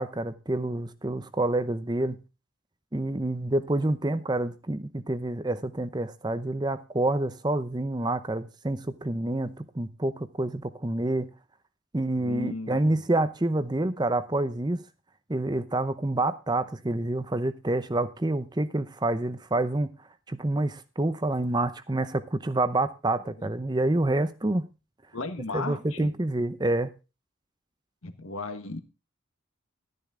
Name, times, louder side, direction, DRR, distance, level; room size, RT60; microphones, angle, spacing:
voice 1, 0.0-2.2 2.9-11.3 11.9-14.8 15.3-19.9 20.3-24.7 25.5-26.9, right 2 dB, 20° right, 0.6 m, -28 dB
voice 2, 12.2-13.0 25.1-26.1 28.0-28.8, left 3 dB, 75° left, 1.6 m, -35 dB
12.5 x 10.5 x 3.7 m
head